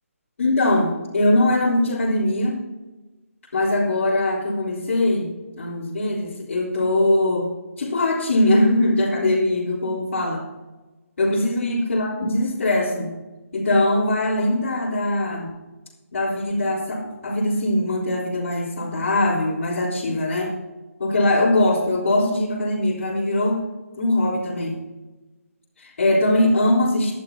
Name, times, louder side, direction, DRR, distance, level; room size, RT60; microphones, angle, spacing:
voice 1, 0.4-2.6 3.5-5.3 5.6-7.5 7.8-10.4 11.2-13.1 13.5-15.5 16.1-20.6 21.0-23.6 24.0-24.8 25.8-27.1, left 1 dB, 60° left, -8 dB, 4.0 m, -21 dB
19.0 x 11.5 x 2.9 m, 1.1 s
figure-of-eight pair, 155°, 8 cm